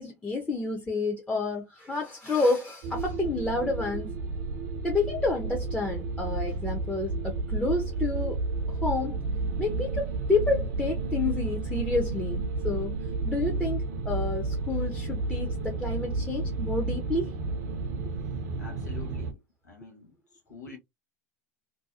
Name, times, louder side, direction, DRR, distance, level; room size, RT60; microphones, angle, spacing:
voice 1, 0.0-4.1 4.8-8.4 8.8-9.2 9.6-13.0 13.2-17.4, left 3 dB, 10° left, 0.7 m, -29 dB
sound 1, 2.8-19.3, right 3 dB, 65° right, 0.6 m, -31 dB
voice 2, 18.6-20.1 20.5-20.8, left 5 dB, 90° left, 0.9 m, -46 dB
2.7 x 2.3 x 2.3 m
hypercardioid pair, 80°, 9 cm